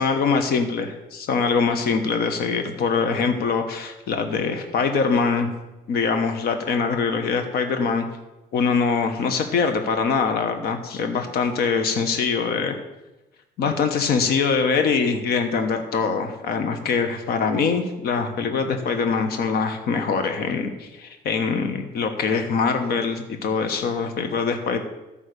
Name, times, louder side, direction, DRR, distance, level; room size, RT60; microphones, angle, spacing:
voice 1, 0.0-5.5 5.9-8.1 8.5-12.8 13.6-24.8, left 5 dB, 65° left, 6 dB, 1.2 m, -23 dB
13.0 x 5.4 x 6.7 m, 1.0 s
cardioid pair, 110°, 17 cm